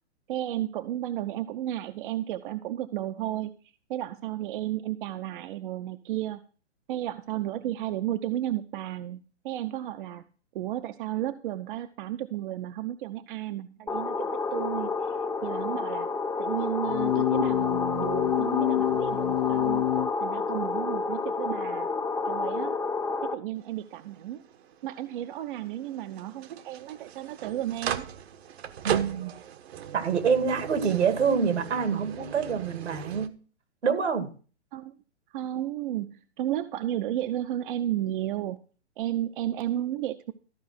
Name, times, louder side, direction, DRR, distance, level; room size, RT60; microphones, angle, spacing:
voice 1, 0.3-3.5 3.9-6.4 6.9-9.2 9.4-10.2 10.5-16.1 16.4-19.8 20.2-21.9 22.3-22.8 23.2-24.4 24.8-28.1 34.7-34.9 35.3-38.6 39.0-40.3, right 12 dB, 50° right, 0.8 m, -33 dB
sound 1, 13.9-23.3, left 4 dB, 10° left, 0.8 m, -30 dB
sound 2, 16.9-20.1, left 14 dB, 55° left, 0.5 m, -27 dB
sound 3, 23.6-33.3, right 10 dB, 65° right, 1.2 m, -38 dB
voice 2, 28.8-29.3 29.9-33.3 33.8-34.3, right 6 dB, 85° right, 2.3 m, -26 dB
14.0 x 4.7 x 6.1 m
hypercardioid pair, 135°, 34 cm